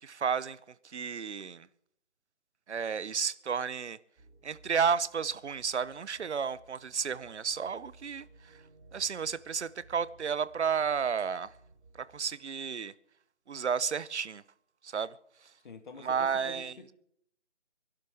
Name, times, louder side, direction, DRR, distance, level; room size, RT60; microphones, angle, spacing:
voice 1, 0.0-1.7 2.7-4.0 4.4-8.6 8.9-11.5 11.9-12.9 13.5-14.4 14.8-15.1 15.4-15.5 16.0-16.8, right 6 dB, 70° right, 0.8 m, -32 dB
sound 1, 4.2-12.3, right 3 dB, 20° right, 7.3 m, -59 dB
voice 2, 15.6-16.9, left 5 dB, 40° left, 1.8 m, -47 dB
27.0 x 12.0 x 3.5 m
figure-of-eight pair, 165°, 35 cm